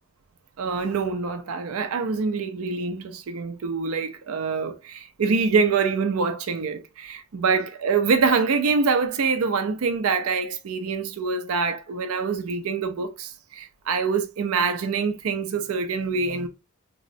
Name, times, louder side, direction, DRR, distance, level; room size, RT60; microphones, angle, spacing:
voice 1, 0.6-16.5, right 5 dB, 90° right, 0.4 m, -25 dB
3.6 x 2.0 x 2.5 m
head